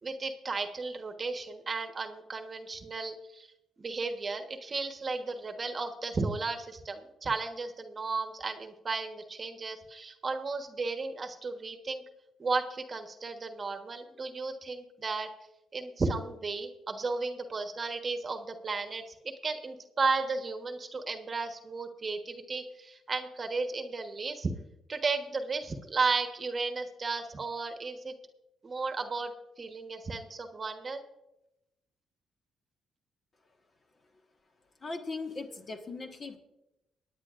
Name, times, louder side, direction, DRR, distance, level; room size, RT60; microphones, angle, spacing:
voice 1, 0.0-3.5 3.8-12.0 12.4-15.3 15.7-24.5 24.9-28.1 28.6-31.0, right 4 dB, 35° right, 6 dB, 1.2 m, -34 dB
voice 2, 34.8-36.4, left 3 dB, 40° left, 4 dB, 1.5 m, -39 dB
23.5 x 9.6 x 2.5 m, 0.91 s
cardioid pair, 90°, 0 cm